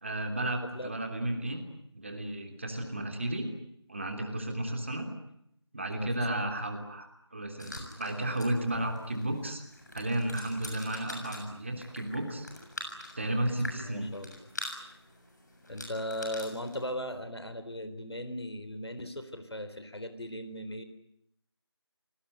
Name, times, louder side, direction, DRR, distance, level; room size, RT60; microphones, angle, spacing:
voice 1, 0.0-1.6 1.9-3.5 3.9-5.1 5.7-9.6 9.9-12.5 13.2-14.1, right 1 dB, 25° right, 4 dB, 3.0 m, -33 dB
voice 2, 6.0-6.6 13.7-14.5 15.7-20.8, equal, 65° left, 10 dB, 3.9 m, -38 dB
sound 1, 7.6-16.8, left 1 dB, 40° left, 7.0 m, -45 dB
28.5 x 19.5 x 9.4 m, 0.75 s
figure-of-eight pair, 175°, 14 cm